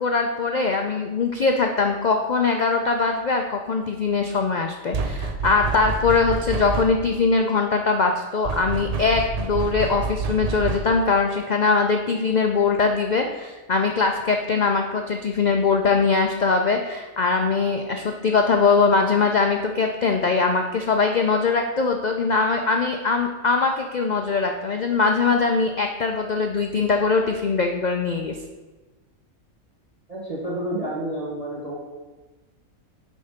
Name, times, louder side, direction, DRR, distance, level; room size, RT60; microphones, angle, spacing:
voice 1, 0.0-28.3, left 4 dB, 75° left, 4 dB, 0.4 m, -22 dB
sound 1, 4.9-7.2 8.4-11.1, right 4 dB, 60° right, 0.4 m, -28 dB
voice 2, 30.1-31.8, right 1 dB, 30° right, -5 dB, 1.2 m, -29 dB
9.4 x 3.8 x 5.0 m, 1.2 s
omnidirectional pair, 1.4 m